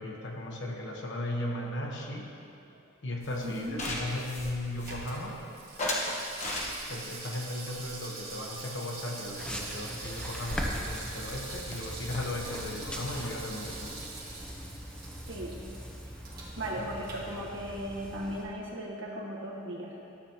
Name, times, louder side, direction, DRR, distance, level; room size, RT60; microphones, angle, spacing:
voice 1, 0.0-2.3 3.0-5.4 6.8-14.0 16.8-16.9, left 1 dB, 60° left, 0 dB, 1.1 m, -36 dB
sound 1, 3.2-5.3 5.8-7.1 7.7-8.9 9.2-9.3 9.6-9.7 9.9-13.8, left 1 dB, 35° left, 1.1 m, -38 dB
voice 2, 3.4-3.9 15.3-15.6 16.6-19.9, right 1 dB, 65° right, -3 dB, 1.5 m, -37 dB
Water tap faucet / Sink (filling or washing), 3.6-17.9 18.2-18.3, right 3 dB, 50° right, 1.7 m, -45 dB
sound 2, 9.4-18.4, equal, 5° left, 0.7 m, -41 dB
12.5 x 7.6 x 2.9 m, 2.6 s
head